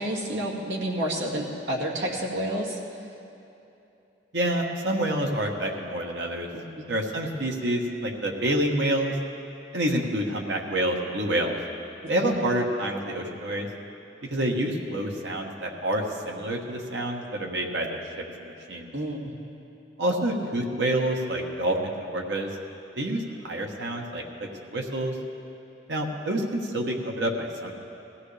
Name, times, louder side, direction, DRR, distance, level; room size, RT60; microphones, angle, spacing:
voice 1, 0.0-2.8 6.5-6.8 12.2-12.4 18.9-19.3, right 1 dB, 85° right, -3 dB, 2.3 m, -30 dB
voice 2, 4.3-6.5 6.9-9.1 9.7-11.6 12.1-13.7 14.3-18.9 20.0-22.5 23.0-24.2 24.6-25.1 25.9-27.7, right 1 dB, 70° right, 0 dB, 1.4 m, -28 dB
20.0 x 15.5 x 3.4 m, 2.8 s
head